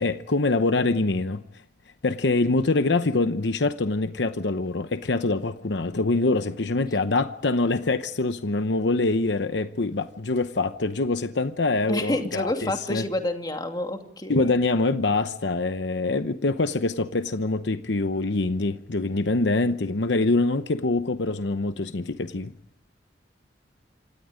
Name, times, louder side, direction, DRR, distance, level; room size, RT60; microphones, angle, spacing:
voice 1, 0.0-1.4 2.0-13.0 14.3-22.5, left 3 dB, 75° left, 0.9 m, -24 dB
voice 2, 11.9-14.5, left 1 dB, 25° left, 2.6 m, -29 dB
27.5 x 26.0 x 5.1 m
head